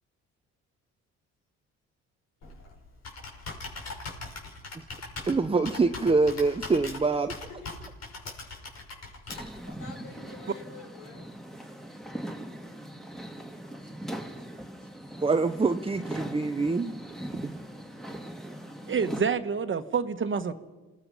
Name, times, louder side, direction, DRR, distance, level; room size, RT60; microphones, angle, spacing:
Computer keyboard, 2.4-9.7, left 3 dB, 60° left, 5.8 m, -41 dB
voice 1, 5.3-7.3 15.2-17.0 17.4-17.5, right 3 dB, 20° right, 8 dB, 0.8 m, -25 dB
sound 1, 9.3-19.2, right 1 dB, ahead, 2.2 m, -40 dB
voice 2, 9.8-11.2 13.1-13.2 13.8-13.9 14.9-15.0 17.6-17.7, left 4 dB, 80° left, -3 dB, 5.2 m, -48 dB
voice 3, 18.9-20.5, right 6 dB, 40° right, 9 dB, 1.5 m, -27 dB
27.5 x 18.5 x 5.7 m, 1.2 s
cardioid pair, 90°, 30 cm